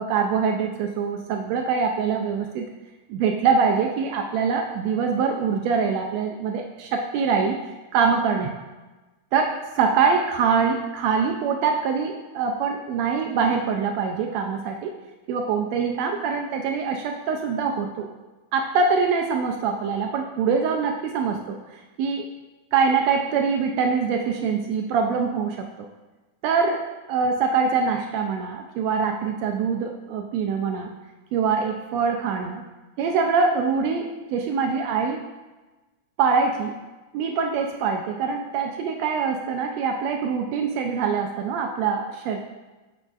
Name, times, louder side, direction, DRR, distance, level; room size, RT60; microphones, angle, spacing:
voice 1, 0.0-2.6 3.1-7.6 7.9-8.5 9.3-14.9 15.3-18.1 18.5-22.2 22.7-25.9 26.4-30.9 31.3-32.6 33.0-35.2 36.2-36.7 37.1-42.4, right 5 dB, 80° right, 3 dB, 1.6 m, -24 dB
7.9 x 7.0 x 2.4 m, 1.2 s
omnidirectional pair, 3.4 m